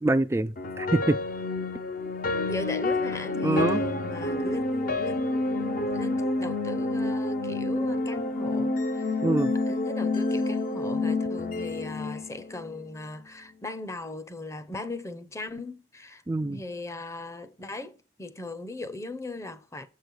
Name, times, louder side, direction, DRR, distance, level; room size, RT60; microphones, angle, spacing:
voice 1, 0.0-1.2 3.4-3.8 9.2-9.5 16.3-16.6, right 2 dB, 15° right, 0.3 m, -25 dB
sound 1, 0.6-12.8, left 2 dB, 50° left, 0.8 m, -29 dB
voice 2, 2.5-9.1 9.7-16.2 16.5-19.9, left 2 dB, 15° left, 0.7 m, -38 dB
7.2 x 6.5 x 4.6 m
head